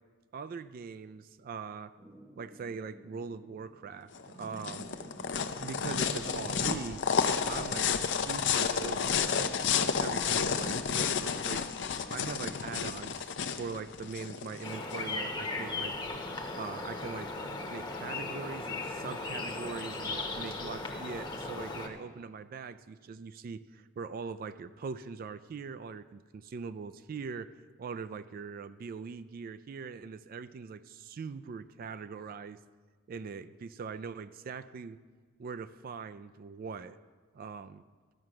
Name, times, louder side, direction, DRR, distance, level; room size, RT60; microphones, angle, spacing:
voice 1, 0.3-1.9 2.4-4.9 5.3-7.0 7.4-11.7 12.1-15.9 16.5-17.3 17.7-27.5 27.8-32.6 33.1-35.0 35.4-37.0 37.3-37.8, right 5 dB, 45° right, 14 dB, 0.3 m, -42 dB
sound 1, 2.0-12.2, right 1 dB, 10° right, 0.8 m, -55 dB
sound 2, 4.1-15.0, left 6 dB, 60° left, 0.6 m, -31 dB
sound 3, 14.6-21.9, left 3 dB, 20° left, 0.9 m, -37 dB
12.5 x 5.9 x 7.6 m, 1.5 s
head